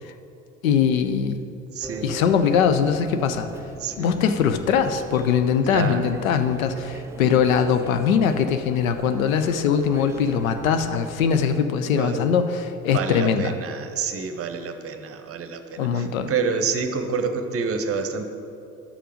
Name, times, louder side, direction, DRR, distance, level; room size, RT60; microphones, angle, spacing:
voice 1, 0.6-1.4 2.0-3.5 4.0-13.5 15.8-16.3, left 7 dB, 70° left, 8 dB, 0.7 m, -21 dB
voice 2, 1.7-2.1 3.8-4.1 5.7-6.1 12.0-12.3 12.9-18.2, right 5 dB, 35° right, 7 dB, 0.9 m, -28 dB
sound 1, 1.8-11.5, right 3 dB, 5° right, 0.3 m, -41 dB
11.5 x 6.7 x 5.0 m, 2.7 s
figure-of-eight pair, 65°, 42 cm